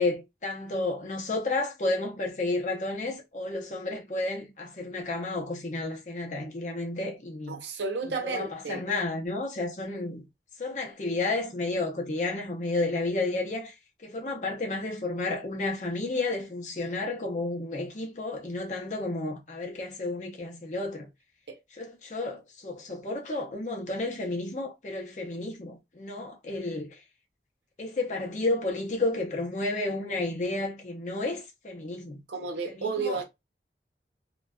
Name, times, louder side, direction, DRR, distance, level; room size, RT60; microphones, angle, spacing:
voice 1, 0.0-7.6 8.2-10.2 10.6-13.7 14.0-21.1 21.7-27.0 27.8-32.2 32.7-33.2, left 2 dB, 45° left, 0.6 m, -31 dB
voice 2, 7.5-8.9 21.5-21.6 32.3-33.2, right 4 dB, 85° right, 0.6 m, -32 dB
2.6 x 2.2 x 2.2 m
head